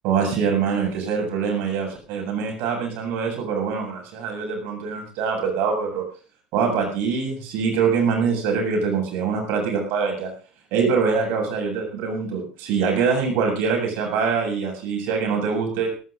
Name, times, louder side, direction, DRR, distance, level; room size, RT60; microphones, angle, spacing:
voice 1, 0.0-6.0 6.5-10.3 10.7-15.9, right 5 dB, 50° right, 3 dB, 7.8 m, -24 dB
22.0 x 19.0 x 2.7 m, 0.38 s
figure-of-eight pair, 70°, 5 cm